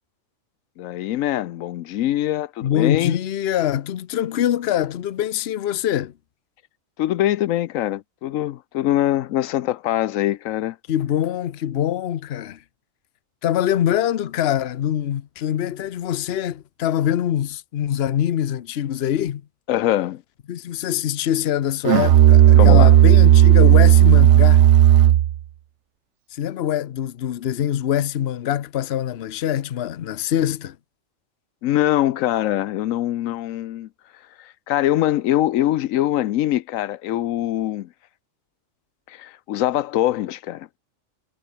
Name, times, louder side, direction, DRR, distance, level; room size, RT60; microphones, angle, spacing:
voice 1, 0.8-3.2 7.0-10.8 19.7-20.2 22.5-23.0 31.6-33.9 34.4-37.9 39.1-40.7, left 13 dB, 85° left, 1.0 m, -23 dB
voice 2, 2.6-6.1 10.9-12.6 13.4-19.4 20.5-24.7 26.3-30.8, left 11 dB, 60° left, 0.9 m, -24 dB
Musical instrument, 21.8-25.4, right 12 dB, 70° right, 0.9 m, -12 dB
omnidirectional pair, 1.3 m